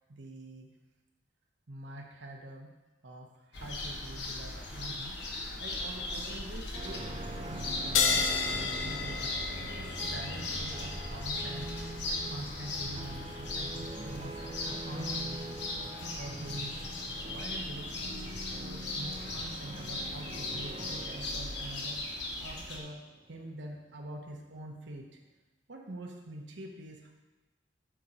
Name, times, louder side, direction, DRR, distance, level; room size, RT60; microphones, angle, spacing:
voice 1, 0.1-0.7 1.7-2.7 3.0-5.2 5.6-15.6 16.0-16.7 17.3-23.0 23.3-25.1 25.7-27.1, right 1 dB, 70° right, 1 dB, 1.1 m, -45 dB
sound 1, 3.5-22.8, left 2 dB, 60° left, 1.2 m, -38 dB
sound 2, 6.7-23.6, right 2 dB, 30° right, 0.4 m, -44 dB
sound 3, 7.9-14.9, left 5 dB, 80° left, 0.6 m, -35 dB
7.3 x 5.2 x 4.3 m, 1.1 s
head